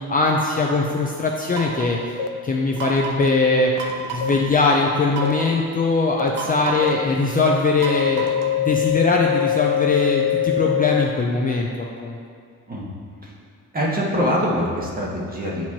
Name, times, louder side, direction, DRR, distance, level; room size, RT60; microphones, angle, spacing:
voice 1, 0.1-3.7 4.1-8.3 8.6-11.7 12.0-12.2, left 3 dB, 25° left, -1 dB, 0.5 m, -21 dB
sound 1, 1.5-2.0 2.8-3.3 3.8-4.4 5.1-5.6 6.3-7.0 7.8-8.6, right 5 dB, 65° right, 0.8 m, -32 dB
sound 2, 2.2-2.3 3.2-3.3 4.2-4.3 5.2-5.3 6.2-6.3 6.8-6.9 7.4-7.5 7.9-11.0, left 10 dB, 85° left, 0.5 m, -22 dB
voice 2, 13.7-15.7, equal, 25° right, -4 dB, 1.4 m, -24 dB
9.2 x 4.5 x 2.9 m, 2.3 s
cardioid pair, 105°, 34 cm